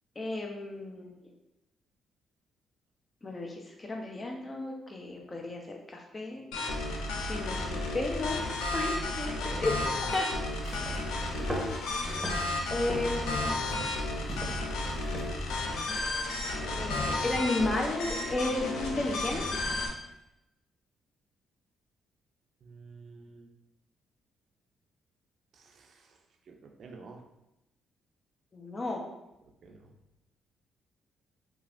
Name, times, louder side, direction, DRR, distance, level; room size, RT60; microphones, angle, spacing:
voice 1, 0.2-1.1 3.2-5.6 5.9-6.4 7.3-8.5 8.7-10.3 12.7-13.6 16.7-19.5 28.5-29.0, left 2 dB, 35° left, 1 dB, 0.6 m, -33 dB
voice 2, 5.1-5.5 10.1-10.3 16.6-16.9 22.6-23.5 25.5-27.2 29.6-30.0, right 4 dB, 60° right, 3 dB, 0.4 m, -51 dB
sound 1, 6.5-19.9, left 2 dB, 80° left, 0.4 m, -33 dB
sound 2, 10.5-15.6, equal, 10° right, 0.8 m, -39 dB
3.1 x 2.4 x 2.5 m, 0.92 s
supercardioid pair, 60°, 0 cm